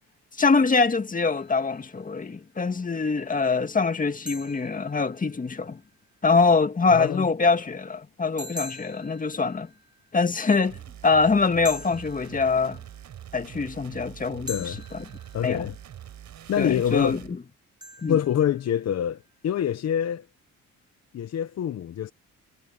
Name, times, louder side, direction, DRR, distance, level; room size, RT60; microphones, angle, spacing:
voice 1, 0.4-5.8 6.2-9.7 10.1-10.8 11.0-12.8 13.3-14.5 15.4-15.7 16.6-17.2 18.0-18.2, left 4 dB, 25° left, 2.0 m, -23 dB
sound 1, 1.3-2.0 4.3-5.7 8.4-10.1 11.6-13.0 14.5-15.8 17.8-19.0, left 1 dB, 15° right, 4.3 m, -43 dB
voice 2, 6.9-7.3 14.5-14.8 15.3-15.7 16.5-17.2 18.1-20.2 21.1-22.1, left 10 dB, 60° left, 1.1 m, -26 dB
sound 2, 10.6-17.3, right 10 dB, 70° right, 5.0 m, -44 dB
cardioid pair, 90°, 30 cm